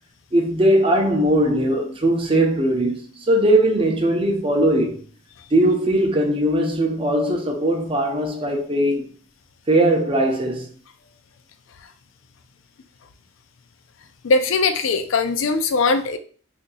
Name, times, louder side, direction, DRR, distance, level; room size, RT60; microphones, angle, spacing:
voice 1, 0.3-5.0 5.5-9.1 9.7-10.7, right 1 dB, 25° right, 0.6 m, -19 dB
voice 2, 14.2-16.2, left 3 dB, 70° left, 0.4 m, -20 dB
2.7 x 2.5 x 4.0 m
head